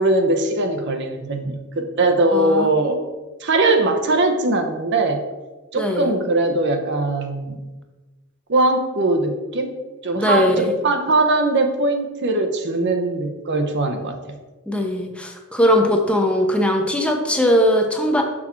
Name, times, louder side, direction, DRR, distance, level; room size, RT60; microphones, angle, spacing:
voice 1, 0.0-3.0 3.4-5.2 5.7-7.6 8.5-9.7 10.0-14.2, right 2 dB, 55° right, 6 dB, 0.8 m, -20 dB
voice 2, 2.3-2.7 5.8-6.1 10.2-10.7 14.7-18.2, equal, 5° left, 3 dB, 0.8 m, -19 dB
6.2 x 5.9 x 4.4 m, 1.2 s
head